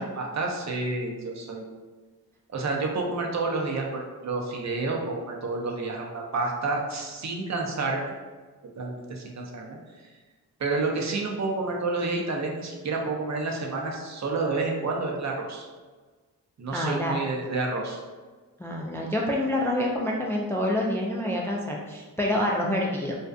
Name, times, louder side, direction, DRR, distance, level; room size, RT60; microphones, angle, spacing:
voice 1, 0.0-1.6 2.5-8.1 8.8-9.8 10.6-15.7 16.6-18.0, right 3 dB, 45° right, 0 dB, 0.6 m, -29 dB
voice 2, 16.7-17.1 18.6-23.2, left 1 dB, 5° left, -1 dB, 0.3 m, -27 dB
2.5 x 2.3 x 2.3 m, 1.4 s
supercardioid pair, 40°, 40 cm